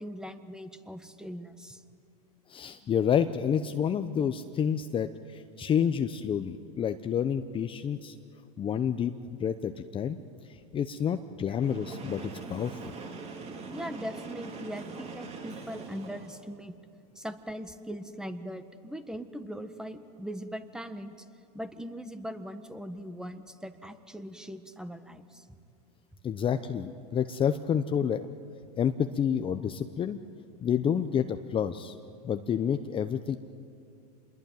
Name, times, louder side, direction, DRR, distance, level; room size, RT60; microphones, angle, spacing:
voice 1, 0.0-1.8 13.7-16.7 17.1-21.3 21.5-25.5, equal, 5° right, 10 dB, 1.5 m, -40 dB
voice 2, 2.5-8.2 8.6-9.1 9.4-10.2 10.4-12.9 26.2-28.3 28.7-30.2 30.6-32.0 32.2-33.4, left 8 dB, 25° left, 9 dB, 0.9 m, -29 dB
Train, 11.5-16.5, right 4 dB, 30° right, 3.4 m, -42 dB
27.0 x 21.5 x 9.3 m, 2.5 s
supercardioid pair, 115°, 20 cm